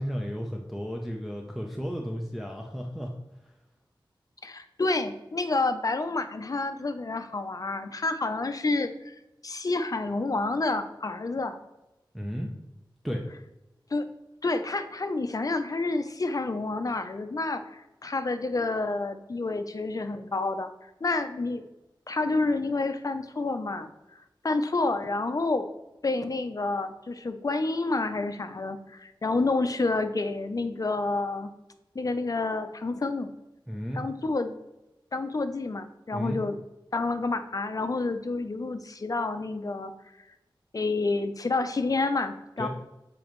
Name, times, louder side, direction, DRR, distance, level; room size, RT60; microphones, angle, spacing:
voice 1, 0.0-3.1 12.1-12.5 13.0-13.2 33.7-34.0 36.1-36.4 42.6-42.7, equal, ahead, 0 dB, 0.6 m, -33 dB
voice 2, 4.4-11.6 13.9-14.1 14.4-20.7 21.0-21.6 22.1-23.9 24.4-25.7 26.0-31.5 31.9-33.3 33.9-34.6 35.1-36.6 36.9-39.9 40.7-42.7, left 3 dB, 45° left, 9 dB, 0.5 m, -29 dB
7.0 x 5.2 x 3.1 m, 0.96 s
wide cardioid pair, 85°, 9 cm